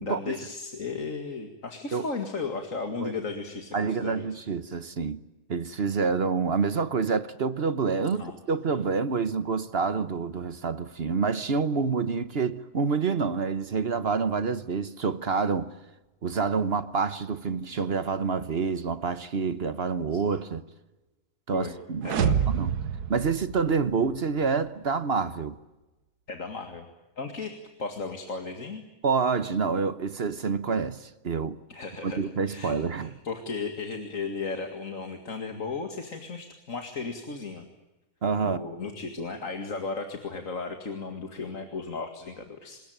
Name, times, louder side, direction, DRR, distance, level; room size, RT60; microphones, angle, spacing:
voice 1, 0.0-4.4 8.0-8.4 20.1-20.2 21.5-21.8 22.0-22.3 26.3-26.9 27.2-27.5 27.8-28.8 31.7-37.7 38.4-42.8, left 4 dB, 55° left, 2.5 m, -35 dB
voice 2, 3.7-5.2 5.5-15.7 16.2-20.6 21.5-22.1 22.5-22.7 23.1-25.6 29.0-31.6 32.0-33.1 38.2-38.6, right 5 dB, 45° right, 1.2 m, -27 dB
sound 1, 22.0-24.2, right 7 dB, 85° right, 1.6 m, -27 dB
26.5 x 21.0 x 9.2 m
omnidirectional pair, 1.6 m